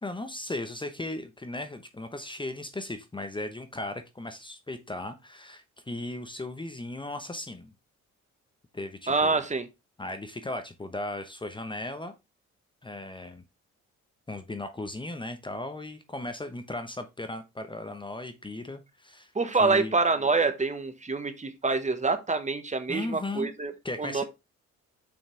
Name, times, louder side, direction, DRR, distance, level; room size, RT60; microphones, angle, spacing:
voice 1, 0.0-7.7 8.7-9.4 10.0-12.1 12.8-13.4 14.3-19.3 19.6-19.9 22.9-23.5 23.8-24.2, left 2 dB, 15° left, 1.0 m, -36 dB
voice 2, 9.1-9.7 19.3-23.7 24.0-24.2, right 3 dB, 25° right, 1.3 m, -26 dB
7.0 x 5.7 x 3.3 m
cardioid pair, 90°, 30 cm